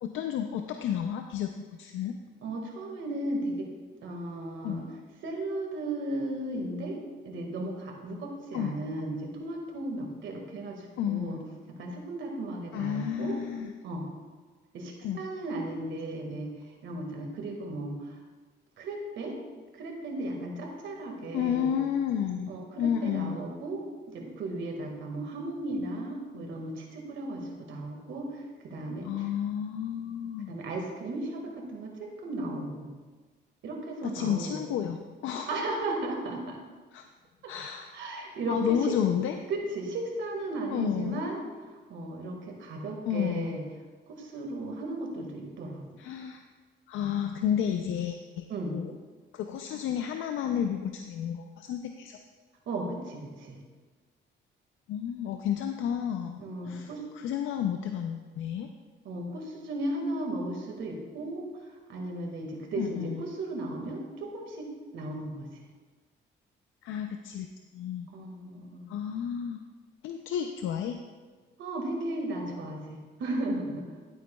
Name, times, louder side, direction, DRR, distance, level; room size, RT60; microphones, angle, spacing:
voice 1, 0.0-1.5 1.8-2.1 4.6-4.8 8.5-8.7 11.0-11.4 12.7-13.7 15.0-15.2 21.3-22.5 22.8-23.4 29.0-30.6 34.0-35.5 36.9-37.0 37.5-37.9 38.5-39.4 40.7-41.2 43.1-43.6 46.0-46.4 46.9-48.5 48.7-48.9 49.3-52.2 54.9-56.9 57.1-58.7 62.8-63.2 66.8-67.5 67.7-68.1 68.9-69.6 70.0-71.0, left 9 dB, 85° left, 5 dB, 0.5 m, -31 dB
voice 2, 2.4-3.7 4.0-4.9 5.2-7.0 7.3-11.4 11.7-13.4 13.8-14.1 14.7-18.2 18.8-19.4 19.7-21.7 22.5-23.8 24.1-29.3 30.5-32.9 33.6-34.6 35.5-36.6 37.4-37.5 37.9-39.0 39.5-43.6 44.1-45.8 48.5-48.7 52.7-53.6 56.4-57.0 59.0-65.5 68.1-68.9 71.6-73.9, right 2 dB, 75° right, 1 dB, 1.8 m, -35 dB
11.5 x 9.1 x 2.3 m, 1.4 s
cardioid pair, 90°, 20 cm